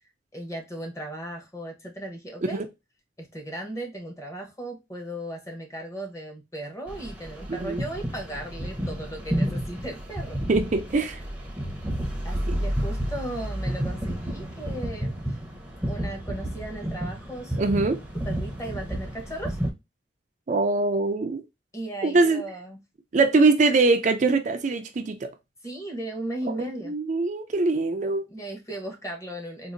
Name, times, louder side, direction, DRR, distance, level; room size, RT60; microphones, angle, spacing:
voice 1, 0.3-2.6 3.2-10.4 12.2-15.1 15.9-17.7 18.1-19.6 21.7-22.8 25.6-26.9 28.3-29.7, right 1 dB, 15° left, 1.0 m, -36 dB
sound 1, 6.9-19.7, equal, 5° right, 0.7 m, -31 dB
voice 2, 7.5-7.8 10.5-11.2 12.5-12.6 17.6-18.0 20.5-21.4 22.0-22.4 23.1-25.3 26.6-28.2, right 3 dB, 45° right, 0.4 m, -23 dB
3.8 x 2.5 x 2.5 m
head